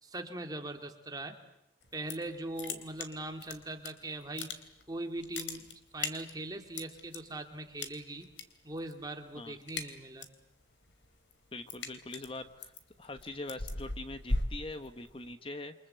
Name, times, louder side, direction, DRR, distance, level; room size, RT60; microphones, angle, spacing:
voice 1, 0.0-1.4 1.9-4.5 4.9-8.3 8.6-10.3, right 2 dB, 20° right, 4 dB, 2.7 m, -40 dB
sound 1, 1.8-2.3 2.6-3.9 4.2-4.9 5.2-7.2 7.8-8.4 8.7-9.1 9.4-10.4 10.8-15.3, left 3 dB, 75° left, 3.3 m, -38 dB
voice 2, 11.5-12.7 13.0-15.7, left 2 dB, 30° left, 9 dB, 1.2 m, -43 dB
29.0 x 26.0 x 8.1 m, 0.83 s
head